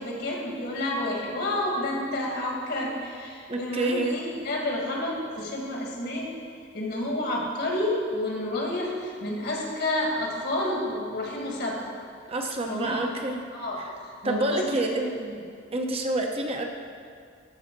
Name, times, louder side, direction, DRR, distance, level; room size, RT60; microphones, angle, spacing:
voice 1, 0.0-6.3 6.7-11.9 12.7-13.0 13.5-14.8 15.0-15.3, left 1 dB, 55° left, -1 dB, 1.8 m, -30 dB
voice 2, 3.5-4.2 12.3-13.4 14.2-15.1 15.7-16.6, right 2 dB, 30° right, 2 dB, 0.7 m, -27 dB
13.0 x 5.5 x 4.5 m, 2.1 s
head